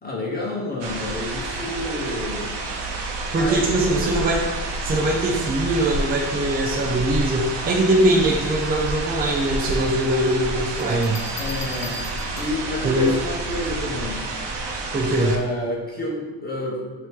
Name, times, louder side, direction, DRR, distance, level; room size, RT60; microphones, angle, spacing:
voice 1, 0.0-2.5 3.3-3.9 11.4-12.0 12.4-14.2 15.2-17.1, left 1 dB, 20° left, -3 dB, 1.1 m, -29 dB
sound 1, 0.8-15.4, right 2 dB, 80° right, 0.9 m, -29 dB
voice 2, 3.3-4.4 4.8-11.2 12.8-13.1 14.9-15.4, right 1 dB, 25° right, -1 dB, 0.5 m, -21 dB
sound 2, 10.8-12.7 14.4-14.7, left 3 dB, 40° left, 1.0 m, -38 dB
8.9 x 3.0 x 3.7 m, 1.2 s
cardioid pair, 180°, 41 cm